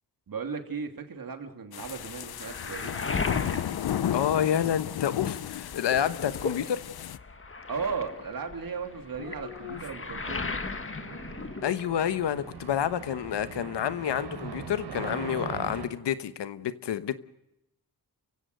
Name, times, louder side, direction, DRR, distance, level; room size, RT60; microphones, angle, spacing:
voice 1, 0.3-3.0 7.7-10.5, right 5 dB, 55° right, 5 dB, 2.9 m, -36 dB
sound 1, 1.7-7.2, left 10 dB, 65° left, 0.7 m, -34 dB
Waves surf, 1.8-5.0 5.4-12.3 12.6-13.5, left 4 dB, 30° left, 1.7 m, -37 dB
voice 2, 4.1-6.8 9.2-9.8 11.6-17.2, left 9 dB, 85° left, 12 dB, 1.2 m, -29 dB
sound 2, 8.1-15.9, right 5 dB, 80° right, 3.9 m, -42 dB
30.0 x 16.0 x 6.7 m, 0.90 s
cardioid pair, 85°, 41 cm